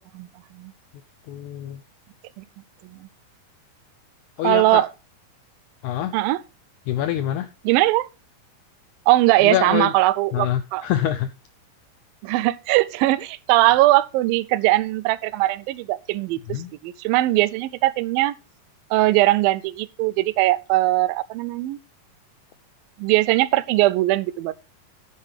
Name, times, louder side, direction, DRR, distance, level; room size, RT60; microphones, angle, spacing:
voice 1, 0.1-0.7 2.4-2.5 2.8-3.1 4.4-4.9 6.1-6.4 7.6-8.1 9.1-10.9 12.2-18.4 18.9-21.8 23.0-24.5, right 17 dB, 85° right, 2.4 m, -20 dB
voice 2, 1.3-1.8 4.4-4.8 5.8-6.1 6.9-7.5 9.4-9.9 10.3-11.3 16.5-16.7, left 11 dB, 85° left, 1.7 m, -25 dB
9.6 x 9.5 x 3.3 m
omnidirectional pair, 4.1 m